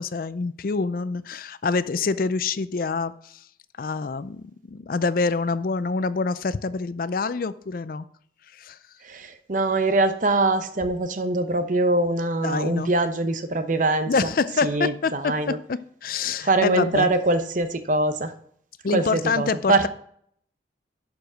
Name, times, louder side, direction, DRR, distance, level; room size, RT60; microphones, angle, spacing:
voice 1, 0.0-3.4 3.8-8.0 8.5-8.8 12.4-12.9 14.1-17.1 18.8-19.9, left 4 dB, 50° left, 15 dB, 0.4 m, -26 dB
voice 2, 9.0-14.3 14.6-15.6 16.4-18.3 18.9-19.9, right 2 dB, 45° right, 9 dB, 0.8 m, -23 dB
11.5 x 4.9 x 6.2 m, 0.65 s
head